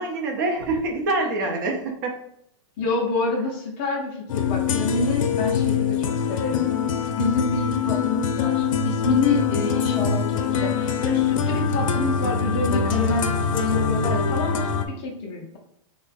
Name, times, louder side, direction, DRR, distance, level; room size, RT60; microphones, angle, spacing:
voice 1, 0.0-2.1, right 2 dB, 40° right, 2 dB, 0.6 m, -25 dB
voice 2, 2.8-6.7 7.2-15.6, left 3 dB, 20° left, -1 dB, 0.4 m, -27 dB
sound 1, 4.3-14.8, left 6 dB, 90° left, 0.5 m, -24 dB
3.4 x 2.1 x 3.9 m, 0.75 s
supercardioid pair, 175°, 17 cm